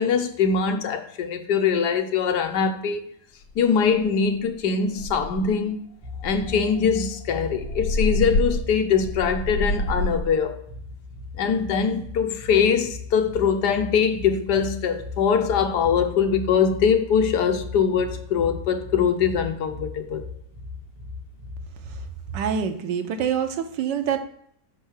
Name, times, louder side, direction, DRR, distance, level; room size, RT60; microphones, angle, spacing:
voice 1, 0.0-3.0 3.6-5.8 6.2-10.6 11.4-20.2, left 6 dB, 70° left, 1.2 m, -22 dB
sound 1, 3.5-3.6 4.0-4.2 4.6-4.7 5.0-5.6 6.2-10.4, left 2 dB, 85° left, 1.6 m, -28 dB
sound 2, 6.0-22.4, left 3 dB, 50° right, 2.1 m, -38 dB
voice 2, 22.3-24.2, right 8 dB, 75° right, 1.4 m, -25 dB
5.4 x 4.6 x 6.3 m
omnidirectional pair, 2.0 m